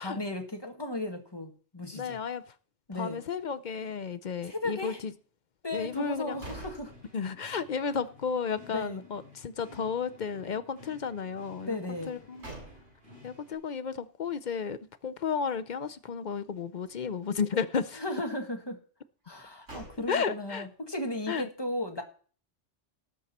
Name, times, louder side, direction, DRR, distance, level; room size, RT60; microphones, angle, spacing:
voice 1, 0.0-2.2 2.9-3.2 4.4-5.0 5.6-6.9 8.7-9.0 11.6-12.2 17.9-18.8 19.2-22.0, left 1 dB, 20° left, 1.7 m, -35 dB
voice 2, 1.9-2.4 2.9-5.1 5.7-6.4 7.1-11.8 12.1-12.4 13.2-18.0 20.1-20.7 21.3-21.5, left 6 dB, 50° left, 0.6 m, -33 dB
sound 1, 5.7-13.5, left 2 dB, 45° right, 5.8 m, -54 dB
sound 2, 6.0-7.7 8.0-8.1 11.9-13.2 19.2-20.5, right 2 dB, 70° right, 6.9 m, -47 dB
18.5 x 6.3 x 4.2 m
omnidirectional pair, 1.2 m